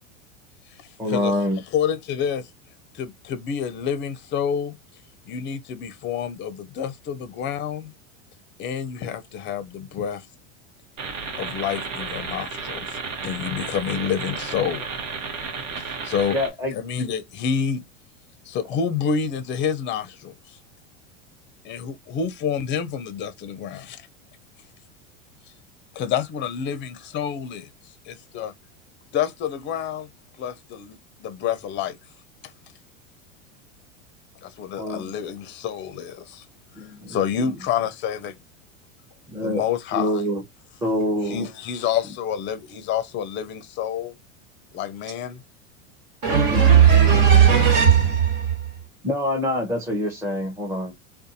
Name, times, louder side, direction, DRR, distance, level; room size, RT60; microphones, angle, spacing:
voice 1, 1.0-1.6 16.3-16.7 34.8-35.1 36.8-37.5 39.3-39.6 39.9-40.4 40.8-41.5 46.5-46.7 49.0-50.9, left 1 dB, 5° right, 0.7 m, -26 dB
voice 2, 1.7-2.5 2.9-4.7 5.3-7.9 8.6-10.2 11.4-14.9 15.8-16.4 16.7-17.8 18.5-20.6 21.6-24.1 25.9-27.7 28.1-28.5 29.1-30.1 30.4-32.0 34.4-36.4 36.8-38.4 39.4-40.2 41.2-44.2 44.7-45.4, left 8 dB, 30° left, 0.5 m, -28 dB
sound 1, 11.0-16.5, right 5 dB, 85° right, 1.1 m, -32 dB
voice 3, 46.2-48.5, right 8 dB, 60° right, 1.5 m, -15 dB
2.5 x 2.4 x 2.5 m
hypercardioid pair, 105°, 39 cm